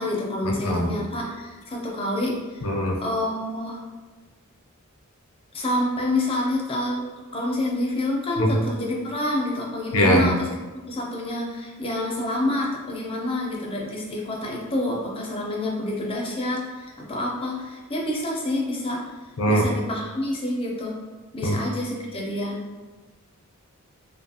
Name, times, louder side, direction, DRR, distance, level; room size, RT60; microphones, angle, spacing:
voice 1, 0.0-2.7 3.0-3.8 5.5-7.1 7.3-10.5 10.9-19.0 19.5-21.0 21.3-22.6, left 1 dB, 25° left, -2 dB, 0.6 m, -28 dB
voice 2, 2.6-3.0 8.4-8.5 9.9-10.3 19.4-19.6 21.4-21.6, equal, 75° left, 0 dB, 0.6 m, -20 dB
2.7 x 2.3 x 2.8 m, 1.3 s
head